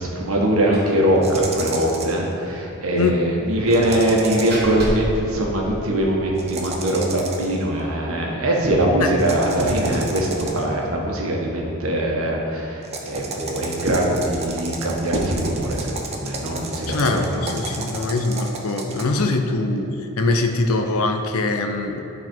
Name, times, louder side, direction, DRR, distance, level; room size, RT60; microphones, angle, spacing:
voice 1, 0.0-17.4, right 1 dB, 80° right, -1 dB, 1.3 m, -22 dB
Slam, 0.7-1.0 1.3-1.4 1.8-1.9 3.7-6.3, right 1 dB, 45° right, 1.2 m, -31 dB
sound 1, 1.2-2.3 3.7-4.7 6.4-7.6 9.2-10.8 12.8-19.0, right 3 dB, 30° right, 0.6 m, -33 dB
voice 2, 16.9-22.0, left 3 dB, 85° left, 4 dB, 0.6 m, -22 dB
11.0 x 4.1 x 4.5 m, 2.7 s
head